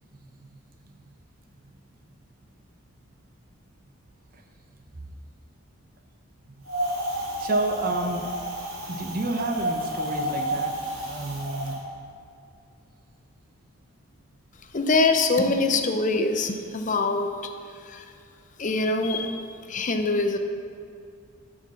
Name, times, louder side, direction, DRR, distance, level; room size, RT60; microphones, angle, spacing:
Wind, 6.7-11.8, right 1 dB, 90° right, 2.7 m, -31 dB
voice 1, 7.4-8.2 8.9-11.8, right 2 dB, 40° right, 4 dB, 0.7 m, -29 dB
voice 2, 14.7-17.3 17.9-18.0 18.6-19.4 19.7-20.4, left 3 dB, 35° left, 6 dB, 0.6 m, -23 dB
9.7 x 5.2 x 7.0 m, 2.4 s
head